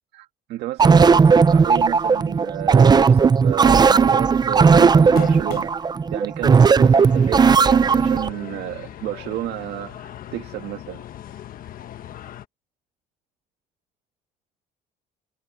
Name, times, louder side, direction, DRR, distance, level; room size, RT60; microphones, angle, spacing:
voice 1, 0.1-5.8 6.1-11.0, right 15 dB, 85° right, 1.7 m, -31 dB
sound 1, 0.8-8.3, right 5 dB, 25° right, 0.6 m, -15 dB
sound 2, 3.2-3.4 3.8-3.9 4.9-5.8 6.6-6.7 8.2-8.3, left 13 dB, 75° left, 3.6 m, -34 dB
sound 3, 6.8-12.4, left 12 dB, 55° left, 1.2 m, -39 dB
cardioid pair, 110°, 17 cm